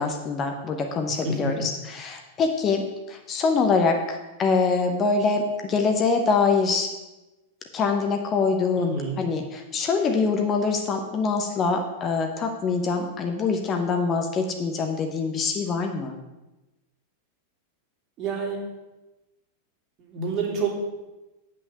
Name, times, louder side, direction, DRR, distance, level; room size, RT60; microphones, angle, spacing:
voice 1, 0.0-6.9 7.7-16.2, left 4 dB, 30° left, 4 dB, 1.0 m, -24 dB
voice 2, 8.8-9.2 18.2-18.6 20.0-20.7, right 4 dB, 35° right, 0 dB, 2.6 m, -28 dB
8.8 x 5.8 x 6.5 m, 1.0 s
figure-of-eight pair, 90°, 0 cm